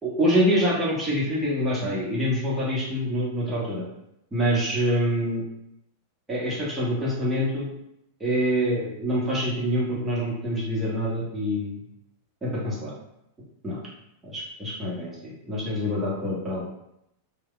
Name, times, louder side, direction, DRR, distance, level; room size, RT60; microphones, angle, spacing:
voice 1, 0.0-3.8 4.3-5.4 6.3-7.7 8.2-11.8 12.4-12.9 13.6-13.8 14.2-16.7, equal, 15° right, -7 dB, 1.0 m, -26 dB
3.2 x 2.2 x 2.2 m, 0.79 s
figure-of-eight pair, 90°, 0 cm